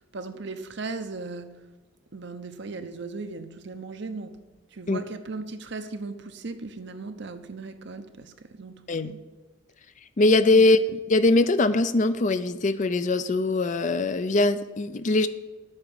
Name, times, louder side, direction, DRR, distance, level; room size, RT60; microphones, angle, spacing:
voice 1, 0.0-1.6 2.1-4.4 4.7-9.2 10.5-10.7, right 3 dB, 60° right, 0.8 m, -37 dB
voice 2, 10.2-15.3, left 2 dB, 40° left, 0.5 m, -21 dB
8.8 x 5.9 x 8.2 m
head